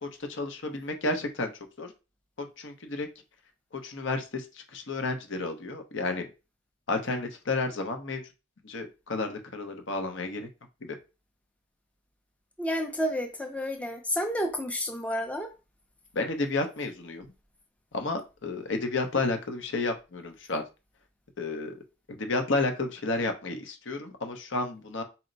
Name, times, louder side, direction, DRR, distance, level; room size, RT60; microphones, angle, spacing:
voice 1, 0.0-1.5 1.8-1.9 2.4-3.1 3.7-6.3 6.9-8.2 8.6-10.5 10.8-11.0 16.1-17.3 17.9-20.6 21.4-21.8 22.1-25.0, left 3 dB, 70° left, 5 dB, 0.8 m, -31 dB
voice 2, 12.6-15.5, equal, 5° left, 3 dB, 0.5 m, -30 dB
4.3 x 2.1 x 3.9 m, 0.28 s
head